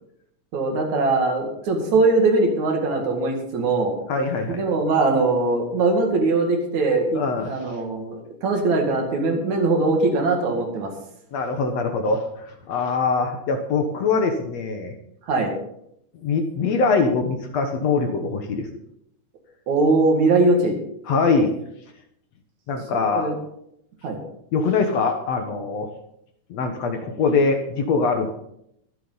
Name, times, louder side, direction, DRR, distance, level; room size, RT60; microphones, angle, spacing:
voice 1, 0.5-4.0 4.5-10.9 15.3-15.5 19.7-20.8 23.1-23.3 24.0-24.2, right 3 dB, 65° right, 2 dB, 3.4 m, -21 dB
voice 2, 4.1-4.6 7.1-7.5 11.3-14.9 16.2-18.7 21.1-21.6 22.7-23.3 24.5-25.9 26.5-28.3, left 4 dB, 60° left, 5 dB, 2.1 m, -23 dB
22.5 x 8.2 x 4.0 m, 0.75 s
omnidirectional pair, 3.7 m